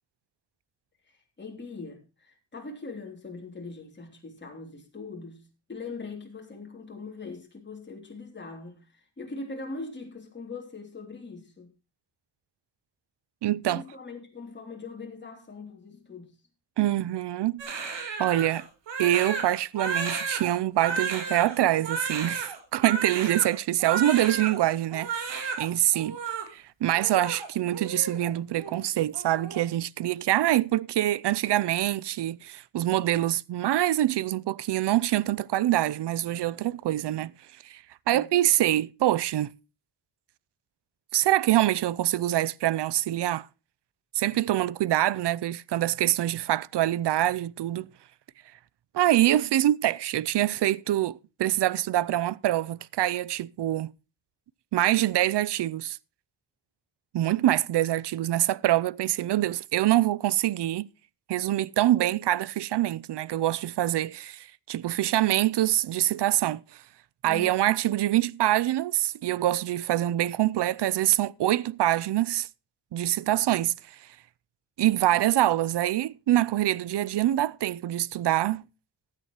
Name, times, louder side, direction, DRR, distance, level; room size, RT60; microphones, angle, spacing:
voice 1, 1.1-5.4 5.7-11.7 13.7-16.4 38.1-38.3 67.3-67.5, left 3 dB, 25° left, 3.2 m, -41 dB
voice 2, 13.4-13.8 16.8-17.9 18.2-18.7 19.0-26.2 26.5-37.3 37.6-39.5 41.1-43.5 44.1-47.9 48.9-53.9 54.7-56.0 57.1-60.9 61.3-66.8 67.2-72.5 72.9-73.7 74.0-74.1 74.8-78.6, right 13 dB, 70° right, 0.6 m, -25 dB
Crying sobbing, 17.6-24.6 24.9-25.7 25.9-26.4 26.9-28.3 28.6-28.8 29.1-29.6, right 5 dB, 90° right, 3.3 m, -33 dB
15.5 x 10.5 x 3.0 m
wide cardioid pair, 140°, 43 cm